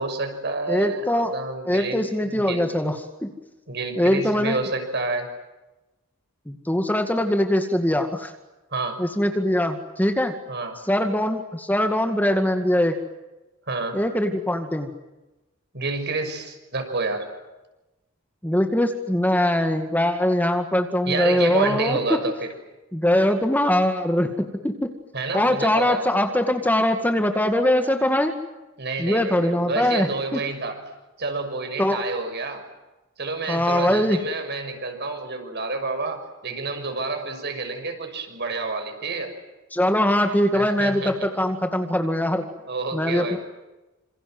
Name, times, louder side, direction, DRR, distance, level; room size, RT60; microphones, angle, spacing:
voice 1, 0.0-2.7 3.7-5.3 8.7-9.0 10.5-10.8 13.7-14.0 15.7-17.3 21.0-22.5 25.1-26.1 28.8-30.8 31.2-32.6 33.2-39.3 40.5-41.3 42.6-43.4, right 3 dB, 55° right, 5 dB, 6.4 m, -29 dB
voice 2, 0.7-1.3 1.7-3.3 4.0-4.6 6.5-8.3 9.0-10.3 10.9-12.9 13.9-14.9 18.4-22.2 22.9-24.7 25.3-28.3 29.0-30.4 31.8-32.0 33.5-34.2 39.7-42.4 42.9-43.4, left 1 dB, 10° left, 6 dB, 2.1 m, -22 dB
28.0 x 27.5 x 7.8 m, 1.0 s
head